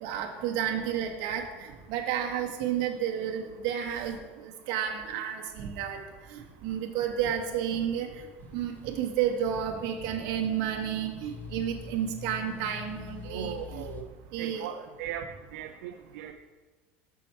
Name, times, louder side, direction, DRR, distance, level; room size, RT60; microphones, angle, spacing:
voice 1, 0.0-4.2 4.7-6.0 6.3-8.1 8.5-13.8 14.3-14.7, right 9 dB, 65° right, 2 dB, 1.1 m, -31 dB
sound 1, 8.4-14.0, left 7 dB, 25° left, 0.7 m, -45 dB
voice 2, 13.2-14.1 14.4-16.3, right 9 dB, 80° right, 5 dB, 0.4 m, -38 dB
6.2 x 5.5 x 4.4 m, 1.3 s
supercardioid pair, 110°, 7 cm